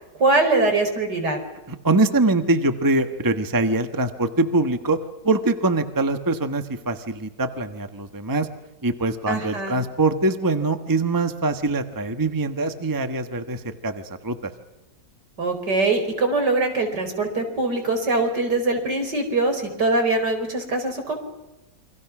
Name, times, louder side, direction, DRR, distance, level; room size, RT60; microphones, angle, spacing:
voice 1, 0.2-1.4 9.3-9.7 15.4-21.2, right 3 dB, 70° right, 5 dB, 5.4 m, -22 dB
voice 2, 1.7-5.0 5.2-8.5 8.8-14.5, right 2 dB, 15° right, 8 dB, 1.2 m, -23 dB
28.5 x 24.5 x 6.1 m, 1.0 s
omnidirectional pair, 1.9 m